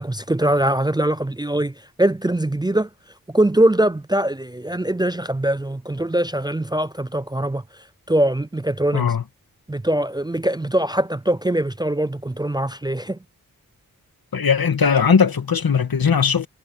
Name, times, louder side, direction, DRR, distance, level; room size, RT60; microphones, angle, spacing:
voice 1, 0.0-2.9 3.3-7.6 8.1-9.0 9.7-13.2, right 1 dB, 10° right, 0.5 m, -22 dB
voice 2, 8.9-9.2 14.3-16.5, left 6 dB, 80° left, 2.1 m, -18 dB
wide cardioid pair, 60°, 35 cm